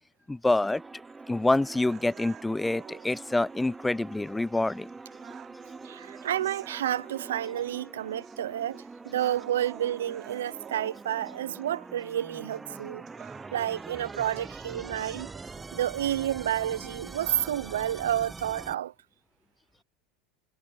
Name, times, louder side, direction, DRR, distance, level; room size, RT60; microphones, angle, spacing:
voice 1, 0.3-0.8 1.3-4.9, left 2 dB, 10° left, 0.3 m, -26 dB
sound 1, 0.6-18.7, right 3 dB, 15° right, 0.8 m, -45 dB
sound 2, 1.6-17.6, right 10 dB, 40° right, 4.8 m, -51 dB
voice 2, 5.8-13.0 13.5-15.3 15.7-18.9, right 11 dB, 90° right, 0.7 m, -30 dB
hypercardioid pair, 95°, 0 cm